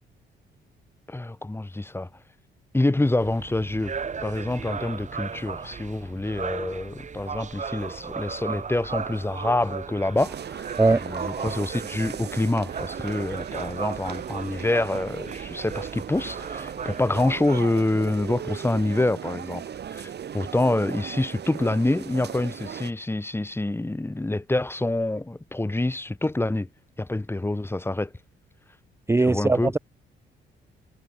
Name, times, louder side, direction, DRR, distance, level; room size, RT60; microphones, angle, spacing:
voice 1, 1.1-2.1 2.7-3.9 4.2-10.7 11.0-19.6 19.9-26.7 27.0-28.1 29.2-29.7, left 2 dB, 10° left, 2.2 m, -26 dB
sound 1, 3.2-17.6, right 6 dB, 35° right, 1.8 m, -36 dB
sound 2, 10.2-22.9, right 9 dB, 60° right, 3.3 m, -37 dB
voice 2, 29.1-29.8, right 3 dB, 15° right, 0.9 m, -20 dB
cardioid pair, 90°, 20 cm